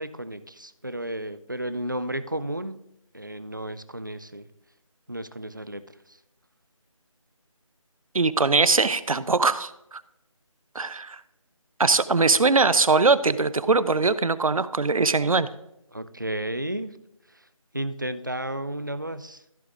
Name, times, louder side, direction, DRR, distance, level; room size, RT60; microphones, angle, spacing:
voice 1, 0.0-2.8 3.1-4.5 5.1-6.2 15.9-17.0 17.3-17.5 17.7-19.4, right 1 dB, 35° right, 12 dB, 0.4 m, -33 dB
voice 2, 8.1-10.0 10.7-11.2 11.8-15.5, right 4 dB, 80° right, 15 dB, 0.7 m, -21 dB
15.0 x 7.0 x 2.5 m, 0.81 s
figure-of-eight pair, 180°, 18 cm